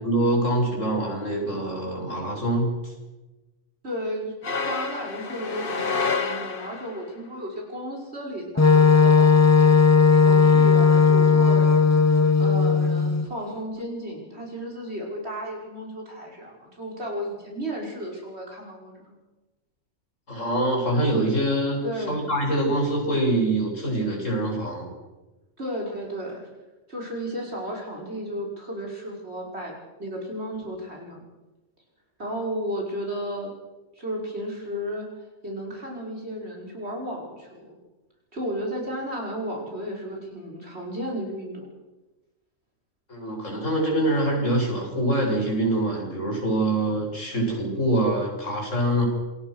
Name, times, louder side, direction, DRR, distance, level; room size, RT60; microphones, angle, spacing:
voice 1, 0.0-2.9 20.3-24.9 43.1-49.0, right 1 dB, 70° left, 0 dB, 7.9 m, -24 dB
voice 2, 3.8-4.3 4.6-11.7 12.4-19.2 21.8-22.2 25.6-26.5 26.9-29.7 30.0-31.2 32.2-33.5 34.0-35.1 35.4-37.8 38.3-41.7, equal, 55° right, -1 dB, 6.4 m, -33 dB
sound 1, 4.4-7.1, left 4 dB, 45° left, 1.6 m, -29 dB
Wind instrument woodwind instrument, 8.6-13.3, left 5 dB, 15° left, 0.6 m, -16 dB
27.5 x 22.0 x 6.6 m, 1.1 s
omnidirectional pair, 1.4 m